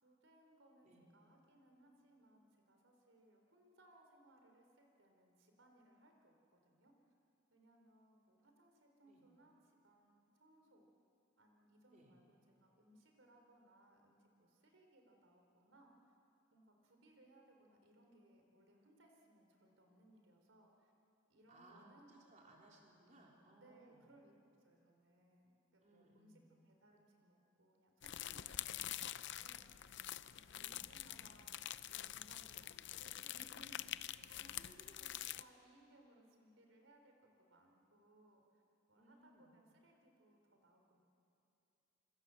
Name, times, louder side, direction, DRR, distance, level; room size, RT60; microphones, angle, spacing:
voice 1, 0.0-6.3 6.6-6.9 7.5-10.8 11.4-16.1 16.5-20.9 21.3-22.2 23.6-24.3 24.6-29.6 30.3-33.9 34.3-34.5 35.0-38.6 38.9-41.0, right 1 dB, 75° right, 2 dB, 4.1 m, -67 dB
voice 2, 21.5-24.1 25.8-26.5 30.5-30.8 34.4-35.2 38.9-39.5, right 1 dB, 40° right, -2 dB, 3.6 m, -64 dB
sound 1, 28.0-35.4, left 12 dB, 60° left, 0.6 m, -46 dB
26.5 x 25.0 x 7.8 m, 2.8 s
head